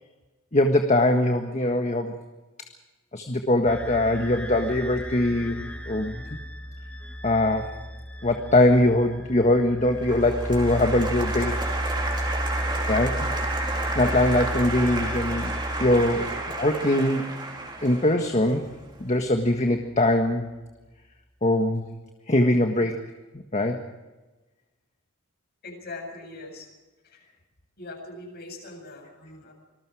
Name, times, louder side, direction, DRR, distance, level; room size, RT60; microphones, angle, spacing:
voice 1, 0.5-2.1 3.1-6.2 7.2-7.8 8.2-11.6 12.9-13.3 13.9-15.5 15.8-16.2 16.6-17.3 17.8-18.7 19.0-20.5 21.4-21.9 22.3-23.1 23.5-23.9, left 1 dB, 35° left, 4 dB, 1.6 m, -22 dB
sound 1, 3.7-16.8, equal, 5° left, 2.0 m, -33 dB
Applause, 10.0-19.1, right 2 dB, 25° right, 4.3 m, -32 dB
voice 2, 25.6-26.7 27.8-29.5, left 2 dB, 50° left, 3 dB, 7.8 m, -41 dB
27.0 x 20.5 x 4.9 m, 1.2 s
head